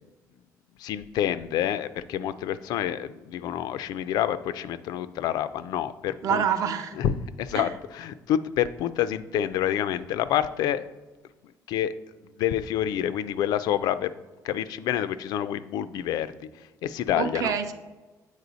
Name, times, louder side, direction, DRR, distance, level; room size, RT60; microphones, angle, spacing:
voice 1, 0.8-6.5 7.0-10.8 11.7-11.9 12.4-14.1 14.4-16.5 16.8-17.5, left 10 dB, 85° left, 13 dB, 0.4 m, -28 dB
voice 2, 6.2-6.9 7.5-7.7 17.1-17.7, right 8 dB, 60° right, 8 dB, 0.6 m, -26 dB
8.2 x 4.9 x 3.9 m, 1.2 s
cardioid pair, 170°, 7 cm